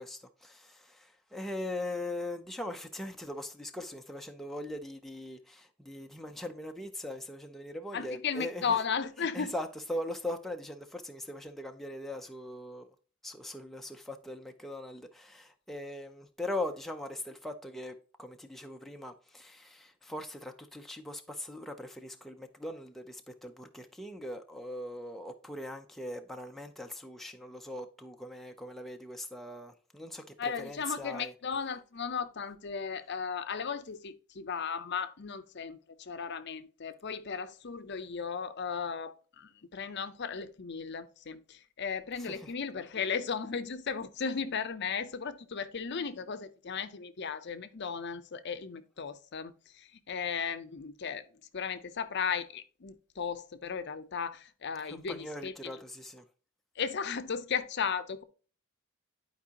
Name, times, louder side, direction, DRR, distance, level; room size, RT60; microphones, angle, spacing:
voice 1, 0.0-8.8 9.3-12.9 13.2-31.3 42.2-42.5 54.8-56.2, left 1 dB, ahead, 0.5 m, -40 dB
voice 2, 7.9-9.5 30.4-51.2 51.5-55.8 56.8-58.2, left 6 dB, 55° left, 0.6 m, -36 dB
11.0 x 4.7 x 2.8 m
head